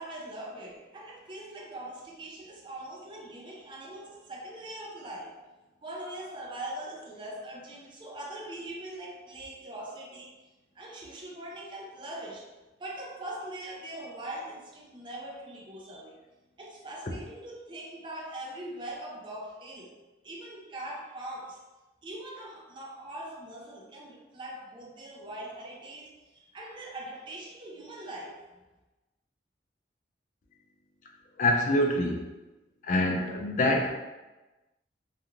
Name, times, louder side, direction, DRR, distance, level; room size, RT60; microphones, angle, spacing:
voice 1, 0.0-5.4 5.8-10.3 10.8-12.5 12.8-16.2 16.6-19.9 20.2-21.6 22.0-28.4, right 1 dB, 25° right, -2 dB, 0.4 m, -41 dB
voice 2, 31.4-32.2 32.8-34.0, left 1 dB, 45° left, 2 dB, 0.4 m, -25 dB
2.4 x 2.4 x 2.9 m, 1.1 s
head